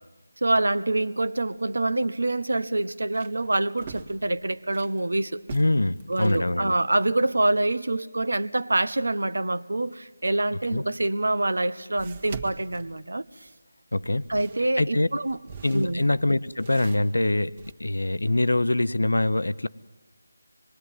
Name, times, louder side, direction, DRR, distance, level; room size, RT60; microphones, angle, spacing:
voice 1, 0.4-5.4 6.1-13.2 14.3-15.4 15.7-16.0, right 2 dB, 75° right, 15 dB, 1.1 m, -26 dB
sound 1, 2.0-2.1 2.6-5.0 5.4-6.5 10.7-10.8 12.0-13.5 14.0-17.7, right 5 dB, 30° right, 1.8 m, -44 dB
voice 2, 5.5-6.7 10.7-10.8 13.9-14.3 14.8-15.1 15.6-19.7, left 2 dB, 80° left, 16 dB, 0.8 m, -24 dB
25.0 x 21.5 x 9.2 m, 1.2 s
figure-of-eight pair, 165°, 0 cm